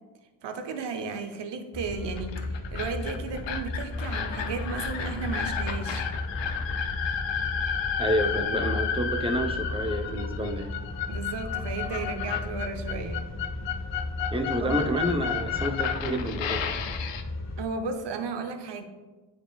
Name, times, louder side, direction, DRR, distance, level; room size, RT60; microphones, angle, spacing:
voice 1, 0.4-6.1 11.1-13.3 14.6-14.9 17.6-18.8, right 4 dB, 75° right, 6 dB, 0.8 m, -34 dB
sound 1, 1.7-17.7, left 2 dB, 35° left, 1.0 m, -35 dB
sound 2, 2.2-17.2, left 8 dB, 80° left, 0.6 m, -32 dB
voice 2, 8.0-10.7 14.3-16.6, equal, 15° right, 4 dB, 0.7 m, -29 dB
9.1 x 4.5 x 2.3 m, 1.3 s
cardioid pair, 50°, 43 cm